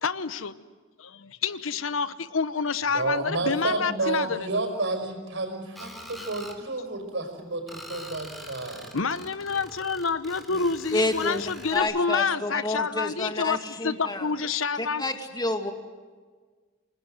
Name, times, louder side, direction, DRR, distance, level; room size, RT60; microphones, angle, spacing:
voice 1, 0.0-0.6 1.0-4.5 8.8-15.0, left 5 dB, 90° left, 14 dB, 1.0 m, -28 dB
voice 2, 2.9-8.8, right 2 dB, 65° right, 5 dB, 5.5 m, -30 dB
Screech, 5.8-6.6 7.7-11.8, equal, ahead, 3.3 m, -44 dB
voice 3, 10.9-11.4 11.7-14.3 14.8-15.7, left 2 dB, 20° left, 5 dB, 2.4 m, -29 dB
28.0 x 20.0 x 7.8 m, 1.5 s
head